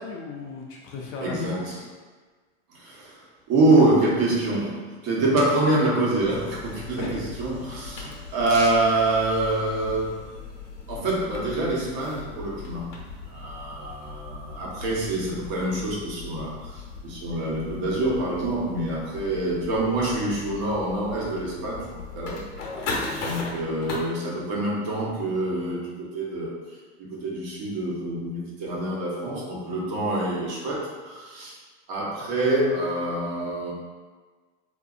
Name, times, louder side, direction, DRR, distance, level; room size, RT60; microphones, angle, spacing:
voice 1, 0.0-1.9 7.0-7.2 23.1-23.2, left 3 dB, 40° left, -1 dB, 0.5 m, -36 dB
voice 2, 1.2-1.7 2.7-3.2 3.5-10.2 10.9-12.9 13.3-16.7 17.0-21.9 22.1-22.4 23.2-26.5 27.0-31.5 31.9-33.7, right 2 dB, 50° right, -5 dB, 1.1 m, -25 dB
sound 1, 6.2-24.0, left 4 dB, 85° left, 0.9 m, -38 dB
3.8 x 2.7 x 2.5 m, 1.4 s
supercardioid pair, 130°, 35 cm